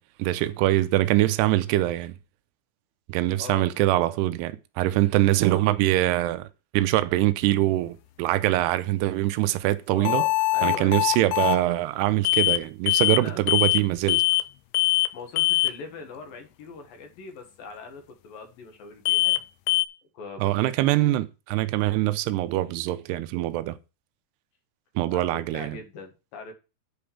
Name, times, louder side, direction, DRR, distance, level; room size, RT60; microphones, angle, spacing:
voice 1, 0.2-2.1 3.1-6.5 6.7-10.2 10.6-14.2 20.4-23.8 25.0-25.8, right 15 dB, 80° right, 2.7 m, -23 dB
voice 2, 9.9-11.0 13.1-13.4 14.8-19.4 20.1-20.7 21.0-21.1 25.1-26.5, left 4 dB, 60° left, 3.2 m, -41 dB
sound 1, 10.1-11.6 12.3-12.6 12.9-13.2 13.5-13.8 14.1-14.5 14.7-15.1 15.4-15.7 19.1-19.4 19.7-19.9, left 19 dB, 85° left, 2.8 m, -22 dB
8.7 x 5.2 x 7.1 m
omnidirectional pair, 4.9 m